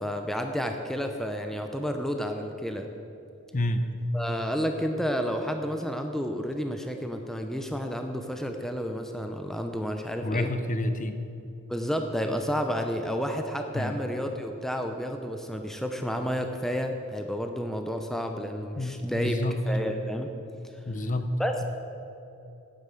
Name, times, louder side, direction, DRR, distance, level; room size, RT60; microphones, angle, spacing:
voice 1, 0.0-2.9 4.1-10.5 11.7-19.3 19.7-20.3 21.4-21.6, equal, ahead, 4 dB, 0.6 m, -31 dB
voice 2, 3.5-3.9 10.2-11.2 13.7-14.0 18.8-19.6 20.9-21.3, left 1 dB, 35° left, 9 dB, 0.7 m, -29 dB
9.6 x 8.9 x 7.7 m, 2.8 s
head